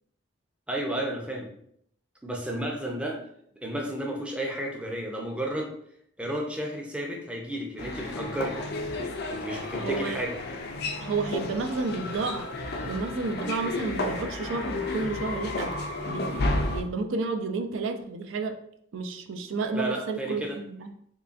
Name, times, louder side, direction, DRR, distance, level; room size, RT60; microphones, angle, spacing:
voice 1, 0.7-1.5 2.2-3.2 3.6-5.7 6.2-8.6 9.3-10.4 19.7-20.6, right 1 dB, 5° right, 0 dB, 0.5 m, -32 dB
sound 1, 7.8-16.8, left 2 dB, 50° left, 0.4 m, -32 dB
voice 2, 9.8-10.2 11.0-12.5 12.9-15.8 16.1-18.6 18.9-20.9, right 3 dB, 80° right, 6 dB, 0.4 m, -31 dB
3.8 x 3.2 x 2.4 m, 0.70 s
head